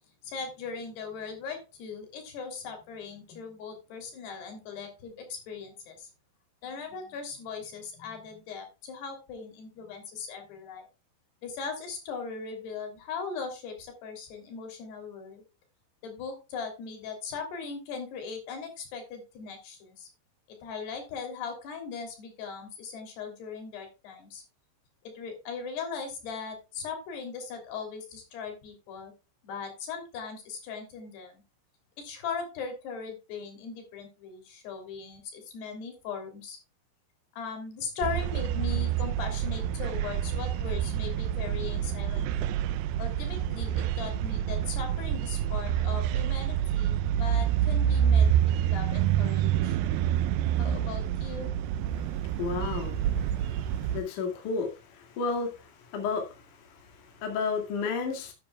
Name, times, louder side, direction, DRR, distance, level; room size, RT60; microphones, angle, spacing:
voice 1, 0.2-6.1 6.6-10.8 11.4-15.4 16.0-20.1 20.6-24.4 25.1-29.1 29.4-31.4 32.0-36.6 37.4-42.6 43.0-49.8 50.6-51.5, left 5 dB, 80° left, 5 dB, 5.1 m, -39 dB
sound 1, 38.0-54.0, right 10 dB, 80° right, 2.2 m, -27 dB
voice 2, 51.9-58.3, left 4 dB, 55° left, 3 dB, 3.3 m, -33 dB
13.5 x 10.5 x 2.3 m, 0.30 s
omnidirectional pair, 4.7 m